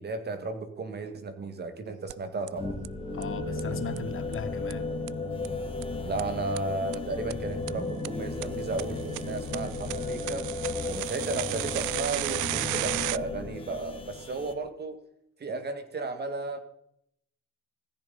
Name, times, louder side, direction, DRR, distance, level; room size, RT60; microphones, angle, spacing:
voice 1, 0.0-2.8 6.0-10.5 10.9-15.0 15.4-16.6, right 3 dB, 35° right, 8 dB, 2.1 m, -34 dB
sound 1, 2.1-2.2 2.5-2.6 2.8-2.9 3.2-3.3 3.6-3.7 4.0-4.1 4.3-4.4 4.7-4.8 5.1-5.2 5.4-5.5 5.8-5.9 6.2-6.3 6.6-6.7 6.9-7.0 7.3-7.4 7.7-7.8 8.0-8.1 8.4-8.5 8.8-13.2, right 20 dB, 80° right, 0.5 m, -33 dB
sound 2, 2.6-14.5, left 3 dB, 15° left, 2.0 m, -34 dB
voice 2, 3.1-4.9, left 6 dB, 45° left, 9 dB, 1.3 m, -37 dB
sound 3, 7.1-10.8, right 1 dB, 10° right, 1.4 m, -46 dB
17.0 x 15.0 x 4.2 m, 0.74 s
cardioid pair, 125°, 30 cm